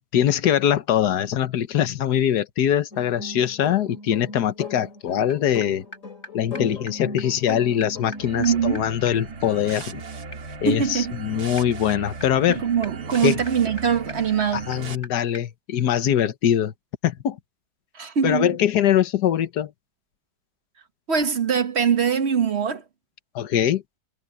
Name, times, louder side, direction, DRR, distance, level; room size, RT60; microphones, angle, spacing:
voice 1, 0.1-5.8 6.3-10.0 10.6-12.6 13.2-13.4 14.5-16.7 17.0-17.4 18.2-19.7 23.3-23.8, left 10 dB, 75° left, 1.6 m, -22 dB
sound 1, 2.9-8.4, left 3 dB, 50° left, 3.1 m, -37 dB
sound 2, 5.3-5.4 5.6-5.7 5.9-6.0 6.2-6.3 6.5-6.6 6.9-7.0 7.2-7.3 7.5-7.6 7.8-15.1 15.3-15.4, left 1 dB, 30° left, 8.0 m, -44 dB
sound 3, 8.1-15.0, right 4 dB, 65° right, 2.3 m, -37 dB
voice 2, 8.4-8.8 10.7-11.2 12.5-14.7 17.9-18.6 21.1-22.8, right 7 dB, 45° right, 1.2 m, -22 dB
omnidirectional pair, 1.8 m